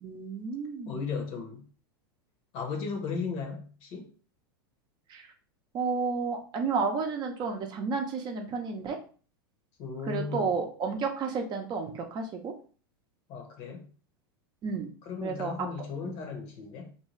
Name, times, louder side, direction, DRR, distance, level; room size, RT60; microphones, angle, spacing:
voice 1, 0.0-1.0 5.1-5.3 5.7-9.0 10.1-12.5 14.6-14.9 15.2-15.7 16.0-16.2, right 5 dB, 35° right, 0.6 m, -32 dB
voice 2, 0.9-1.6 2.5-4.1 9.8-10.5 13.3-13.8 15.1-16.9, left 5 dB, 50° left, 0.9 m, -36 dB
2.6 x 2.3 x 3.1 m
hypercardioid pair, 100°, 13 cm